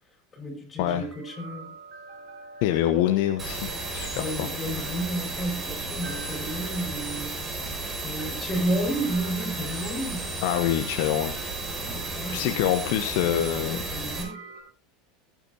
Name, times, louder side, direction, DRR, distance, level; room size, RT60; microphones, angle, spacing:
voice 1, 0.3-1.7 4.2-7.3 8.0-10.3 11.8-12.8 13.2-14.5, right 1 dB, 25° left, 4.9 m, -32 dB
sound 1, 1.0-14.6, right 2 dB, 45° right, 6.1 m, -47 dB
voice 2, 2.6-4.5 10.4-11.4 12.3-13.8, left 12 dB, 55° left, 1.0 m, -25 dB
sound 2, 3.4-14.2, right 2 dB, 25° right, 5.4 m, -33 dB
20.0 x 9.0 x 2.8 m
figure-of-eight pair, 75°, 0 cm